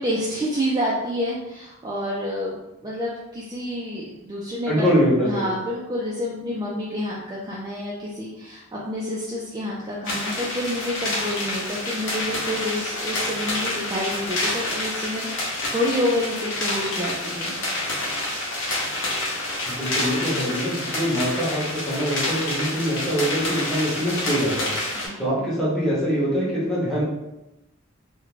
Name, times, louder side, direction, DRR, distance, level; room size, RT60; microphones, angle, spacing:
voice 1, 0.0-4.9 5.2-17.6 24.9-25.5, left 1 dB, 20° right, -6 dB, 0.3 m, -28 dB
voice 2, 4.7-5.5 19.6-24.8 25.2-27.0, equal, 5° left, -9 dB, 0.9 m, -24 dB
sound 1, 10.0-25.1, left 1 dB, 65° left, 0.7 m, -28 dB
2.5 x 2.1 x 3.1 m, 0.94 s
head